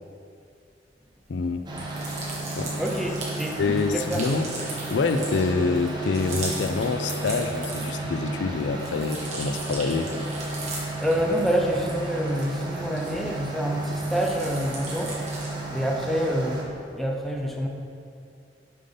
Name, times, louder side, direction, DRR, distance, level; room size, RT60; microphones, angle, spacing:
voice 1, 1.3-1.7 2.5-2.7 3.6-4.5 4.9-10.1, left 4 dB, 80° left, 8 dB, 0.4 m, -26 dB
sound 1, 1.7-16.6, right 2 dB, 25° right, 0.9 m, -33 dB
sound 2, 1.7-8.2 8.5-13.4 13.8-15.6, right 3 dB, 40° right, 1.4 m, -39 dB
voice 2, 2.8-4.2 11.0-17.7, equal, ahead, 0 dB, 0.5 m, -27 dB
7.5 x 5.2 x 3.9 m, 2.4 s
head